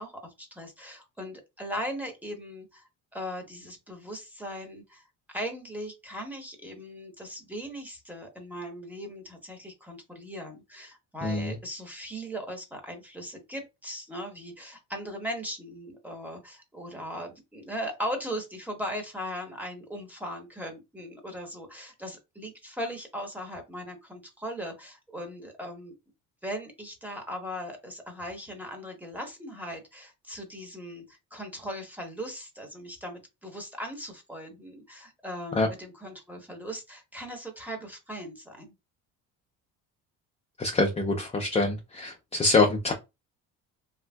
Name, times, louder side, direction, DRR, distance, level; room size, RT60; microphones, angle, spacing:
voice 1, 0.0-25.9 26.4-38.7, equal, 5° right, 1.0 m, -38 dB
voice 2, 11.2-11.6 35.5-35.7 40.6-42.9, left 3 dB, 20° left, 0.5 m, -25 dB
3.2 x 2.6 x 2.2 m
cardioid pair, 105°, 35 cm